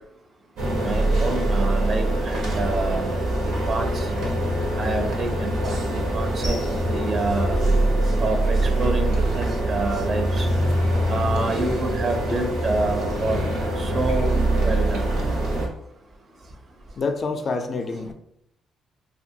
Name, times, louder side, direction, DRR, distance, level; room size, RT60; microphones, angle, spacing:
sound 1, 0.6-15.7, right 1 dB, 85° right, 0.8 m, -23 dB
voice 1, 0.8-3.1 3.4-3.9 4.8-6.6 6.9-7.6 8.2-10.5 11.1-13.4 13.8-14.3 14.6-15.1, right 2 dB, 45° right, 4 dB, 0.5 m, -27 dB
voice 2, 17.0-18.1, left 4 dB, 45° left, 6 dB, 0.3 m, -27 dB
2.9 x 2.2 x 2.7 m, 0.77 s
cardioid pair, 90°, 0 cm